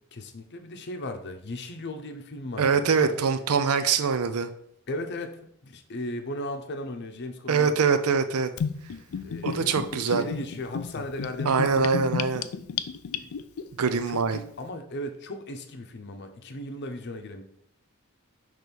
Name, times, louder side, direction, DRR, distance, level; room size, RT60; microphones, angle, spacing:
voice 1, 0.1-3.2 4.9-5.4 5.6-7.7 9.2-11.9 13.1-13.3 13.8-17.4, left 1 dB, 50° left, 6 dB, 0.7 m, -37 dB
voice 2, 2.6-4.5 7.5-8.5 9.4-10.2 11.5-12.4 13.8-14.4, right 5 dB, 85° right, 10 dB, 0.6 m, -23 dB
Gurgling / Bathtub (filling or washing), 8.6-13.6, left 7 dB, 75° left, 0.4 m, -32 dB
6.1 x 3.2 x 5.2 m, 0.71 s
head